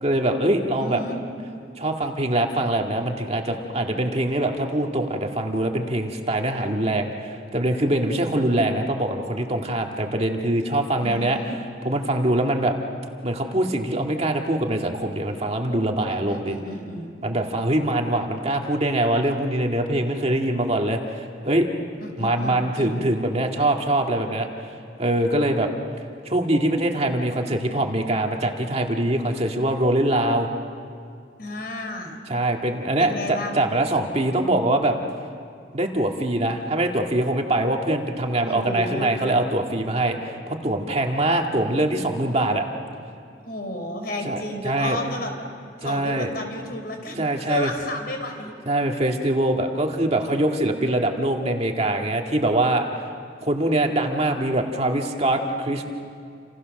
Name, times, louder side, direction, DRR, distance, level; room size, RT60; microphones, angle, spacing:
voice 1, 0.0-1.0 1.8-12.8 13.2-16.6 17.2-21.7 22.2-24.5 25.0-25.7 26.3-30.5 32.3-35.0 35.7-42.6 44.2-45.0 45.8-46.3 47.2-47.7 48.7-52.9 53.4-55.9, right 1 dB, 35° right, 2 dB, 2.0 m, -23 dB
voice 2, 0.8-1.2 11.0-11.6 16.1-17.1 22.0-23.0 31.4-32.2 33.0-33.6 38.4-39.1 43.5-45.3 45.8-48.5, left 1 dB, 55° left, 4 dB, 4.5 m, -32 dB
29.5 x 28.5 x 6.5 m, 2.3 s
head